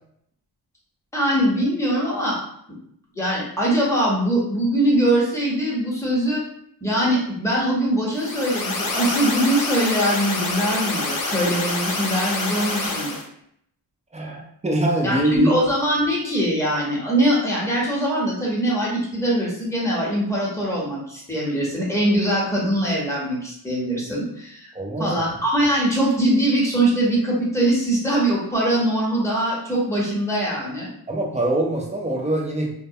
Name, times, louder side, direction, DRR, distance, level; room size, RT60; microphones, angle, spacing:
voice 1, 1.1-2.4 3.1-6.4 6.8-13.1 15.0-24.7 25.0-30.9, right 1 dB, 5° left, -5 dB, 0.9 m, -22 dB
sound 1, 8.1-13.2, left 2 dB, 50° left, 0.6 m, -27 dB
voice 2, 14.1-15.5 24.7-25.2 31.1-32.7, right 1 dB, 15° right, -1 dB, 0.6 m, -23 dB
2.1 x 2.1 x 2.7 m, 0.70 s
cardioid pair, 75°, 40 cm